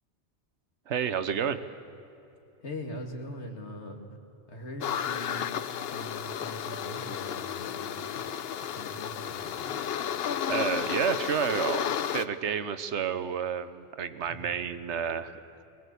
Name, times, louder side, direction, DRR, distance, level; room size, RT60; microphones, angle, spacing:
voice 1, 0.9-1.7 10.5-11.8 12.1-15.4, right 7 dB, 90° right, 12 dB, 1.2 m, -30 dB
voice 2, 2.6-4.0 4.5-8.3 8.7-9.8 14.3-14.5, left 1 dB, 85° left, 3 dB, 2.4 m, -42 dB
sound 1, 4.8-12.3, left 9 dB, 65° left, 0.9 m, -32 dB
22.0 x 19.0 x 8.3 m, 2.9 s
omnidirectional pair, 1.1 m